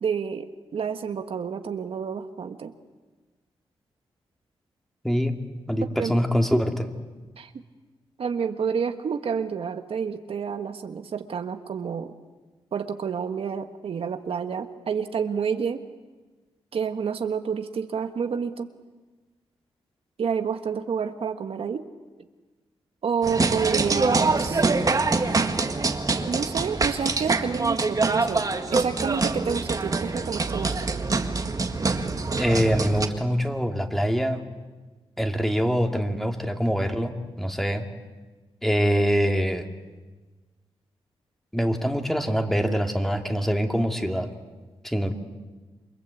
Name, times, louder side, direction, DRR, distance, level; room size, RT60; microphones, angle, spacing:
voice 1, 0.0-2.7 6.0-6.1 7.4-7.5 8.2-12.1 12.7-15.8 16.7-18.7 20.2-21.9 23.0-24.6 26.3-30.9, right 6 dB, 65° right, 7 dB, 1.4 m, -29 dB
voice 2, 5.7-6.9 32.4-34.4 35.2-37.9 38.6-39.6 41.5-44.3 44.8-45.1, equal, 5° left, 4 dB, 2.5 m, -24 dB
sound 1, 23.2-33.1, right 3 dB, 35° right, 2.0 m, -25 dB
29.0 x 24.0 x 8.4 m, 1.3 s
cardioid pair, 90°, 10 cm